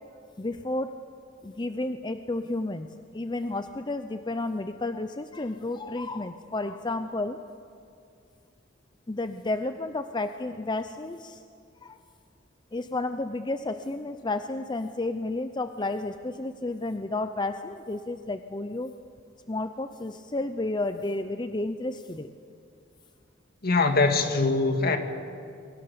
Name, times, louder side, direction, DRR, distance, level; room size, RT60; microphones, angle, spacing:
voice 1, 0.4-0.9 1.4-2.9 3.1-7.4 9.1-11.4 11.8-12.0 12.7-18.9 19.5-22.3, left 2 dB, 25° left, 9 dB, 0.7 m, -31 dB
voice 2, 23.6-25.0, left 3 dB, 55° left, 6 dB, 2.1 m, -22 dB
28.0 x 23.5 x 7.0 m, 2.4 s
head